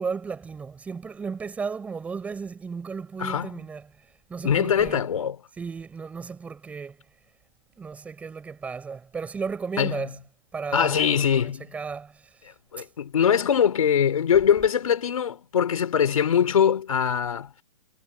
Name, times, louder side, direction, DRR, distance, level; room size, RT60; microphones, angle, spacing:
voice 1, 0.0-3.9 4.3-5.0 5.6-7.0 7.8-10.2 10.5-12.2 12.8-12.9, right 5 dB, 10° right, 6.3 m, -34 dB
voice 2, 3.2-3.5 4.4-5.4 9.8-10.0 10.7-11.7 12.4-17.5, left 8 dB, 75° left, 4.0 m, -22 dB
hypercardioid pair, 165°, 18 cm